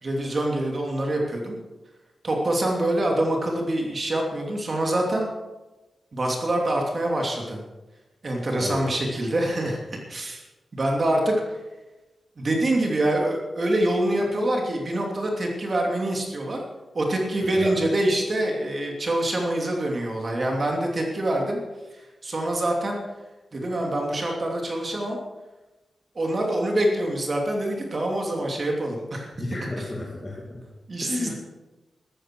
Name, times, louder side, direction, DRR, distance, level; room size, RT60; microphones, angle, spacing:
voice 1, 0.0-1.6 2.2-5.3 6.1-7.6 8.2-9.8 10.1-10.4 10.7-11.6 12.4-16.6 16.9-21.6 21.9-23.0 23.5-25.2 26.1-29.3 29.8-29.9 30.9-31.3, right 1 dB, 40° right, 0 dB, 2.8 m, -25 dB
voice 2, 8.6-8.9 17.4-17.7 29.4-30.6 31.0-31.3, left 2 dB, 20° left, -3 dB, 2.5 m, -32 dB
14.0 x 13.0 x 6.2 m, 1.1 s
wide cardioid pair, 135°, 0 cm